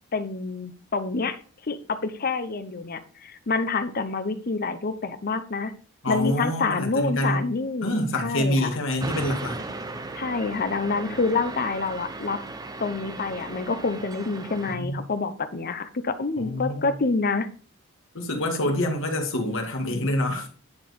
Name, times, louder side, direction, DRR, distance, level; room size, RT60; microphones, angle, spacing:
voice 1, 0.1-1.4 1.7-5.7 6.1-7.9 8.2-8.8 10.1-12.4 12.8-17.5, left 4 dB, 45° left, 0.8 m, -27 dB
voice 2, 6.0-7.5 7.8-9.6 14.7-15.0 16.4-17.0 18.1-20.5, left 1 dB, 65° left, 2.1 m, -26 dB
sound 1, 9.0-14.7, right 2 dB, 20° right, 0.8 m, -36 dB
10.5 x 4.5 x 5.3 m
head